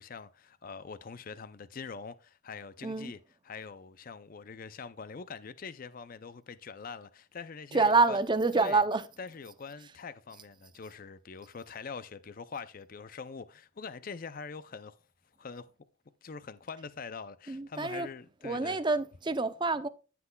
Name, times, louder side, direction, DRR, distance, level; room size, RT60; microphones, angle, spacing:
voice 1, 0.0-3.2 3.4-8.2 8.5-8.8 9.2-15.0 15.4-15.7 16.2-18.8, left 5 dB, 40° left, 0.4 m, -44 dB
voice 2, 7.7-9.0 17.5-18.1 18.4-19.9, right 3 dB, 20° right, 0.5 m, -27 dB
15.0 x 5.9 x 2.3 m
head